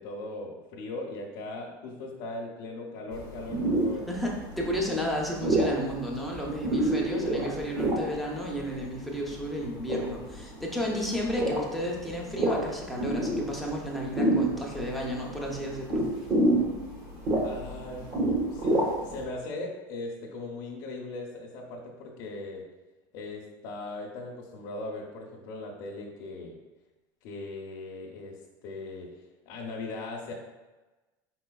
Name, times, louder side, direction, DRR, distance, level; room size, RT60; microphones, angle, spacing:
voice 1, 0.0-4.1 17.4-18.1 18.5-22.7 23.1-26.5 27.2-29.1 29.5-30.3, left 2 dB, 50° left, -4 dB, 0.6 m, -39 dB
sound 1, 3.1-19.2, right 1 dB, 35° right, 0.9 m, -30 dB
voice 2, 4.1-16.1, equal, ahead, -2 dB, 0.5 m, -32 dB
4.4 x 4.2 x 2.2 m, 1.2 s
cardioid pair, 170°, 11 cm